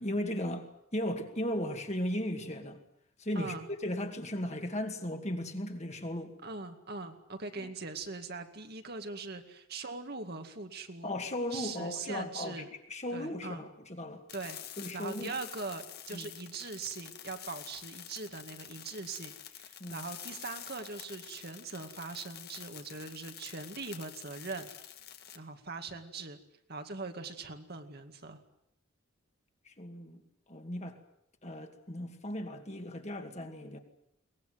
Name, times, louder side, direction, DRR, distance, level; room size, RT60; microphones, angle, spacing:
voice 1, 0.0-2.8 3.2-6.3 7.6-7.7 11.0-14.2 14.8-15.3 16.1-16.3 19.8-20.0 29.7-30.2 30.5-31.0 31.4-33.8, left 1 dB, 30° left, 5 dB, 2.3 m, -36 dB
voice 2, 3.4-3.7 6.4-11.1 11.5-12.7 13.1-13.6 14.3-14.6 14.9-24.7 25.3-26.4 26.7-28.4, right 3 dB, 45° right, 6 dB, 2.2 m, -41 dB
sound 1, 14.3-25.4, left 11 dB, 50° left, 1.8 m, -48 dB
23.0 x 20.0 x 9.3 m, 0.77 s
head